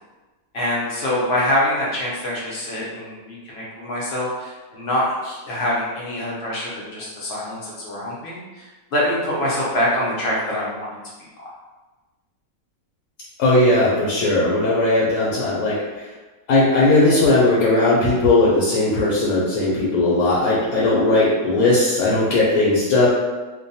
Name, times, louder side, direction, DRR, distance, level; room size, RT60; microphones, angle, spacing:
voice 1, 0.5-11.0 11.4-11.5, left 1 dB, 55° left, -6 dB, 0.8 m, -25 dB
voice 2, 13.4-15.8 16.5-23.1, left 2 dB, 80° left, -6 dB, 1.1 m, -18 dB
2.5 x 2.2 x 2.6 m, 1.2 s
omnidirectional pair, 1.5 m